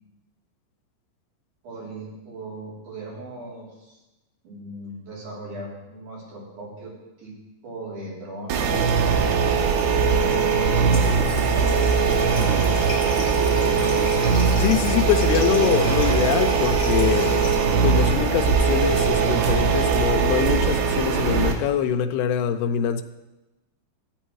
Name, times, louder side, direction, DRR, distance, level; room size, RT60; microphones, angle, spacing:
voice 1, 1.6-4.0 4.4-6.9 7.2-7.3 7.6-8.9 10.1-11.8, right 2 dB, 55° right, -5 dB, 4.7 m, -37 dB
sound 1, 8.5-21.5, right 5 dB, 85° right, 3.1 m, -20 dB
Water tap faucet, 10.9-17.6, left 3 dB, 35° left, 3.2 m, -34 dB
voice 2, 14.6-17.4 17.8-23.0, left 10 dB, 90° left, 8 dB, 2.7 m, -24 dB
14.5 x 8.8 x 4.7 m, 1.0 s
omnidirectional pair, 4.4 m